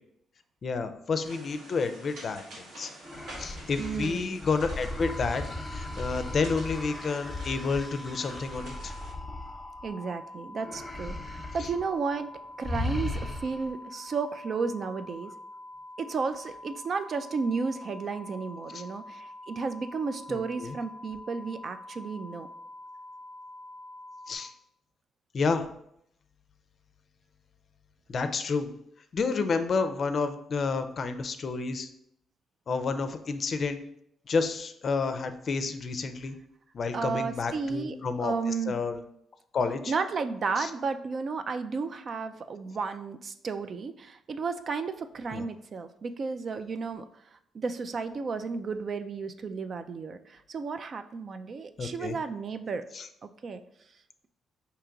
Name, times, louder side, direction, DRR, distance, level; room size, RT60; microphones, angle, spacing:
voice 1, 0.6-2.9 3.4-8.9 18.7-18.8 20.3-20.7 24.3-24.5 25.3-25.7 28.1-28.7 29.1-31.9 32.7-33.8 34.3-36.4 36.7-38.3 38.7-39.0 39.5-39.9 40.6-40.7 45.3-45.4 51.8-52.2 52.9-53.1, left 4 dB, 55° left, 9 dB, 0.4 m, -30 dB
sound 1, 1.2-9.1, right 1 dB, 80° right, 1.2 m, -48 dB
sound 2, 3.0-10.2 10.6-11.8 12.1-12.3 12.6-13.8, left 2 dB, 15° left, 0.9 m, -37 dB
voice 2, 3.8-4.2 9.8-15.3 16.0-22.5 36.9-38.8 39.9-47.1 47.5-52.8 53.2-53.6, right 4 dB, 50° right, 9 dB, 0.3 m, -33 dB
sound 3, 5.0-24.4, left 1 dB, 20° right, 1.0 m, -46 dB
4.6 x 2.9 x 3.7 m, 0.74 s
cardioid pair, 75°, 0 cm